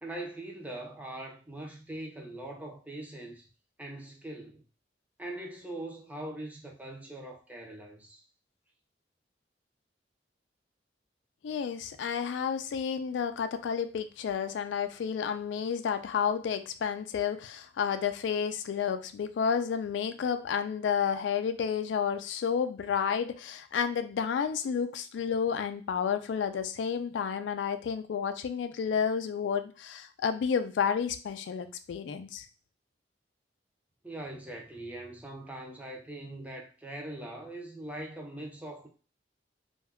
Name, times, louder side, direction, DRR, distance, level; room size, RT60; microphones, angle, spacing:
voice 1, 0.0-3.5 3.8-4.6 5.2-8.2 34.0-38.9, right 1 dB, 10° right, 0.5 m, -42 dB
voice 2, 11.4-32.4, left 7 dB, 85° left, 0.3 m, -31 dB
2.3 x 2.2 x 3.4 m
head